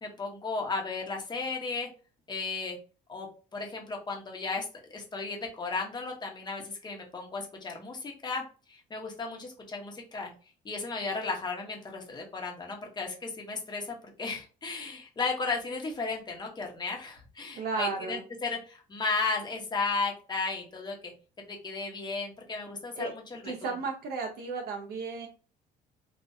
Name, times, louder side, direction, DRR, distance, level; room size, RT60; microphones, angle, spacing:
voice 1, 0.0-1.9 2.3-2.8 3.1-3.3 3.5-8.4 8.7-10.3 10.6-21.1 21.4-23.7, left 4 dB, 25° left, 1 dB, 1.0 m, -34 dB
voice 2, 17.5-18.2 22.9-23.1 23.4-25.3, right 4 dB, 70° right, 2 dB, 0.8 m, -34 dB
3.8 x 2.4 x 2.7 m, 0.36 s
cardioid pair, 110°, 17 cm